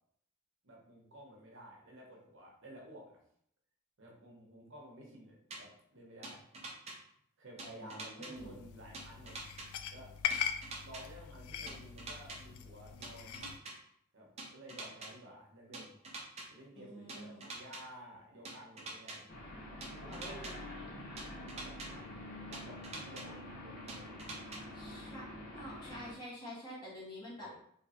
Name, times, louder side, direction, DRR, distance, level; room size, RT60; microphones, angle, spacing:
voice 1, 0.6-3.2 4.0-6.5 7.4-9.4 9.9-10.1 10.8-13.4 14.1-16.0 16.5-19.3 19.9-20.6 21.4-24.1 27.4-27.6, equal, 55° right, -2 dB, 0.9 m, -53 dB
sound 1, 5.5-5.6 6.2-7.0 7.6-8.3 8.9-9.7 10.3-11.0 11.7-12.4 13.0-13.7 14.4-15.1 15.7-16.5 17.1-17.8 18.5-19.2 19.8-20.5 21.2-21.9 22.5-23.2 23.9-24.6, right 2 dB, 30° right, 0.5 m, -45 dB
voice 2, 7.8-8.6 16.8-17.4 20.1-20.6 24.7-25.3 25.5-27.5, equal, 20° left, -6 dB, 1.2 m, -47 dB
sound 2, 8.4-13.6, left 8 dB, 75° left, 0.3 m, -41 dB
sound 3, 19.3-26.1, left 1 dB, 45° left, 0.8 m, -47 dB
3.1 x 3.1 x 2.8 m, 0.68 s
head